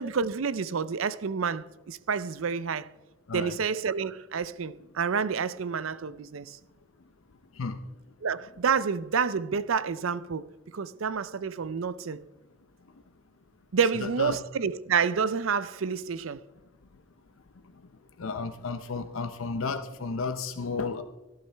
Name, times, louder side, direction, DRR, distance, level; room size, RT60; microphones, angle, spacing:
voice 1, 0.0-2.9 3.3-6.6 8.2-12.2 13.7-16.4, right 6 dB, 85° right, 0.5 m, -29 dB
voice 2, 14.0-14.4 18.2-21.0, left 4 dB, 85° left, 0.7 m, -32 dB
17.5 x 12.0 x 3.4 m
head